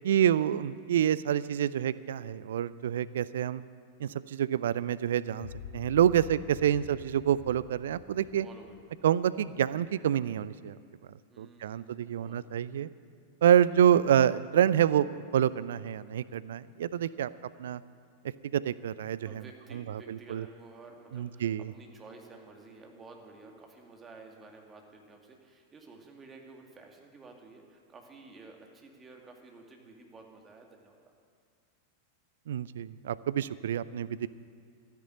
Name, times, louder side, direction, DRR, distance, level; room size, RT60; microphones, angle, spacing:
voice 1, 0.0-3.6 4.0-5.5 5.7-8.5 9.0-10.8 11.4-12.9 13.4-17.3 17.6-17.8 18.5-19.4 19.7-20.5 21.1-21.7 32.5-34.3, right 10 dB, 60° right, 18 dB, 0.4 m, -27 dB
sound 1, 5.4-9.7, left 10 dB, 60° left, 0.5 m, -47 dB
voice 2, 8.4-9.0 11.3-12.5 13.7-13.8 19.3-31.1, right 3 dB, 20° right, 1 dB, 2.4 m, -52 dB
13.5 x 10.5 x 8.9 m, 2.2 s
figure-of-eight pair, 90°, 0 cm